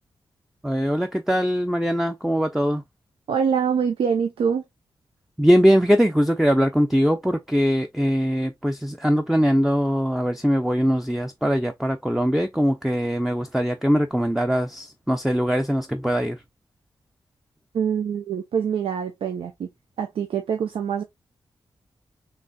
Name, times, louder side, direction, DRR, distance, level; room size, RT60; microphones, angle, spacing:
voice 1, 0.6-2.8 5.4-16.4, equal, ahead, 0.5 m, -21 dB
voice 2, 3.3-4.6 17.7-19.7 20.0-21.0, right 7 dB, 90° right, 0.6 m, -24 dB
3.9 x 3.2 x 2.3 m
cardioid pair, 70°, 9 cm